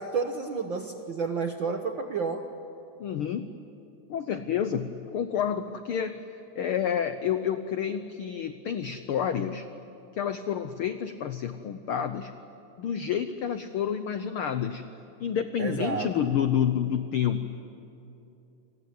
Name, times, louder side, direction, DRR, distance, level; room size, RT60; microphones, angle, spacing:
voice 1, 0.0-2.5 15.6-16.1, right 5 dB, 65° right, 6 dB, 1.2 m, -30 dB
voice 2, 3.0-3.5 4.1-6.2 6.5-9.7 10.1-12.3 12.8-14.8 15.2-17.5, left 8 dB, 80° left, 10 dB, 1.2 m, -29 dB
29.0 x 20.5 x 9.5 m, 2.8 s
omnidirectional pair, 3.5 m